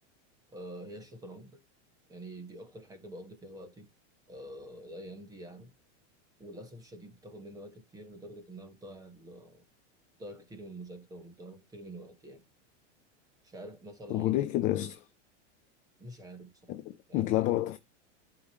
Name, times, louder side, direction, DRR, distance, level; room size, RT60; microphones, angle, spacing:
voice 1, 0.5-1.6 2.1-3.9 4.3-5.7 6.4-9.6 10.2-12.4 13.4-14.5 16.0-16.8 17.1-17.6, right 1 dB, 10° right, 1.5 m, -47 dB
voice 2, 14.1-15.1 16.7-17.8, left 15 dB, 25° left, 0.5 m, -29 dB
12.0 x 5.1 x 2.9 m
supercardioid pair, 165°, 35 cm